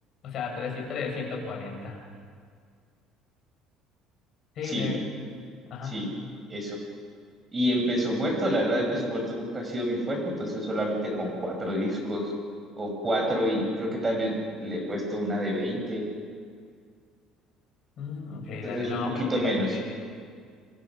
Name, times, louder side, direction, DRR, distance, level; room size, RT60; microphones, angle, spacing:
voice 1, 0.2-2.0 4.5-5.0 5.6-6.0 18.0-20.0, left 5 dB, 45° left, -1 dB, 6.9 m, -34 dB
voice 2, 7.5-12.3 12.8-16.1 18.6-19.7, equal, 20° right, 2 dB, 6.0 m, -28 dB
29.5 x 24.5 x 6.0 m, 2.1 s
cardioid pair, 155°, 0 cm